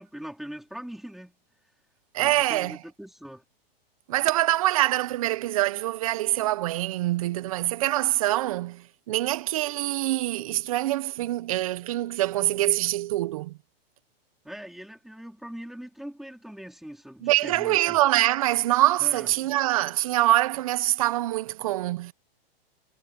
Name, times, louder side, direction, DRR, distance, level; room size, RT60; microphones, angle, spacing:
voice 1, 0.0-1.4 2.2-3.4 14.4-18.0 19.0-19.5, equal, ahead, 4.3 m, -41 dB
voice 2, 2.1-2.8 4.1-13.5 17.2-22.1, right 16 dB, 35° right, 0.8 m, -24 dB
hypercardioid pair, 165°, 30 cm